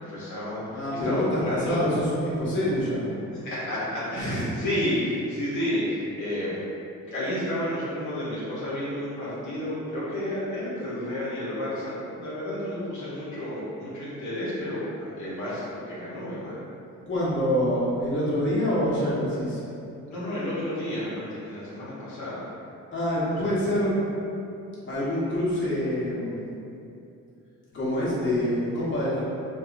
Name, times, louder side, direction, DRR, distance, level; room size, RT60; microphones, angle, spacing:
voice 1, 0.0-1.8 3.4-6.6 7.1-16.6 20.1-22.5 23.2-23.4, left 1 dB, 70° left, -9 dB, 0.8 m, -31 dB
voice 2, 0.7-3.1 4.2-4.5 17.0-19.6 22.9-24.0 24.8-26.4 27.7-29.2, equal, 40° left, -9 dB, 0.9 m, -26 dB
2.6 x 2.3 x 2.4 m, 2.7 s
cardioid pair, 90°, 30 cm